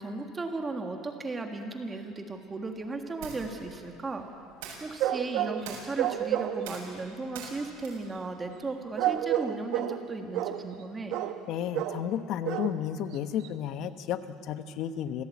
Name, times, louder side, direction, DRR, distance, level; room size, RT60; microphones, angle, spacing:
voice 1, 0.0-4.3 4.8-11.1, right 3 dB, 15° right, 4 dB, 1.6 m, -36 dB
sound 1, 2.0-9.3, right 5 dB, 80° right, 7.3 m, -47 dB
sound 2, 5.0-5.7 6.0-6.7 9.0-10.0 10.3-10.6 11.1-11.4 11.7-12.0 12.5-12.8 13.1-13.2 13.4-13.5, right 12 dB, 55° right, 1.2 m, -29 dB
voice 2, 11.5-15.2, left 9 dB, 50° left, 10 dB, 1.1 m, -32 dB
26.0 x 16.5 x 8.5 m, 2.6 s
cardioid pair, 150°, 0 cm